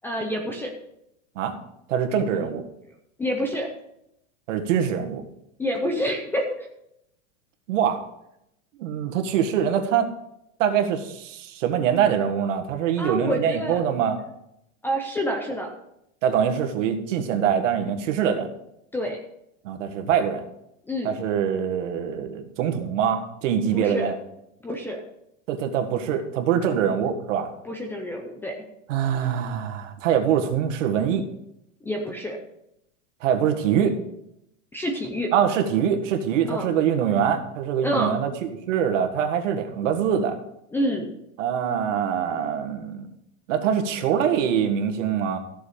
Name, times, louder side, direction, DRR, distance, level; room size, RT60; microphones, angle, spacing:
voice 1, 0.0-0.7 3.2-3.7 5.6-6.7 13.0-13.9 14.8-15.7 18.9-19.2 20.9-21.1 23.7-24.1 24.6-25.0 27.7-28.5 31.8-32.4 34.7-35.3 36.4-36.7 37.8-38.2 40.7-41.1, equal, 5° left, 2 dB, 0.5 m, -27 dB
voice 2, 1.9-2.6 4.5-5.2 7.7-8.0 8.8-10.1 10.6-14.2 16.2-18.5 19.6-20.4 21.0-24.2 25.5-27.5 28.9-31.2 33.2-34.0 35.3-40.4 41.4-43.1 43.5-45.4, right 8 dB, 65° right, 6 dB, 1.8 m, -24 dB
15.0 x 6.8 x 5.0 m, 0.80 s
supercardioid pair, 165°, 40 cm